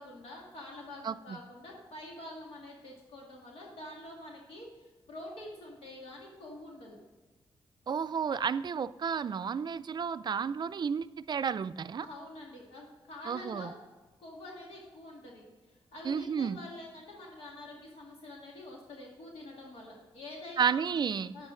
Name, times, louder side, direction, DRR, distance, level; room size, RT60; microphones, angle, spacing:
voice 1, 0.0-7.0 12.0-13.7 14.2-20.8 21.3-21.5, left 1 dB, 85° left, -2 dB, 1.9 m, -47 dB
voice 2, 1.0-1.4 7.9-12.1 13.3-13.7 16.0-16.6 20.6-21.4, right 6 dB, 50° right, 14 dB, 0.4 m, -32 dB
9.7 x 8.6 x 3.8 m, 1.3 s
cardioid pair, 80°, 10 cm